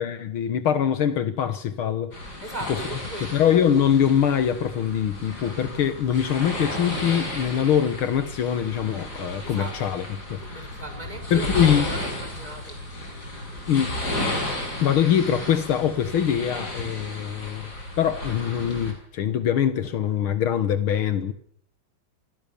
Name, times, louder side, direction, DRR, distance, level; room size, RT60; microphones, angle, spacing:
voice 1, 0.0-2.1 3.3-10.0 10.3-10.7 11.3-11.8 13.7-14.0 14.8-17.7 18.0-21.3, left 9 dB, 80° left, 10 dB, 2.2 m, -23 dB
sound 1, 2.1-18.9, left 1 dB, 50° left, 7.4 m, -33 dB
voice 2, 2.4-3.4 9.4-10.0 10.4-12.8, right 2 dB, 20° right, 6 dB, 5.4 m, -38 dB
sound 2, 11.0-13.3, left 1 dB, 30° left, 6.8 m, -41 dB
28.5 x 23.5 x 7.1 m, 0.66 s
omnidirectional pair, 2.3 m